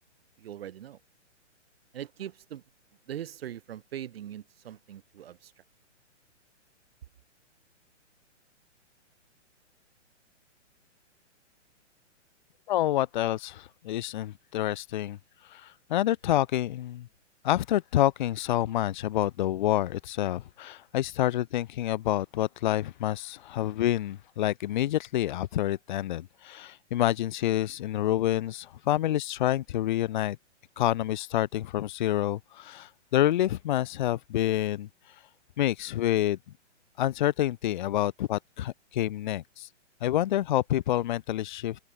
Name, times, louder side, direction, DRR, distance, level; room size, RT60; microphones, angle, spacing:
voice 1, 0.4-1.0 1.9-2.6 3.1-5.5, right 11 dB, 50° right, 6.9 m, -41 dB
voice 2, 12.7-15.2 15.5-17.1 17.4-30.4 30.8-34.9 35.6-36.4 37.0-39.7 40.0-41.8, left 13 dB, 40° left, 1.0 m, -28 dB
hypercardioid pair, 160°, 37 cm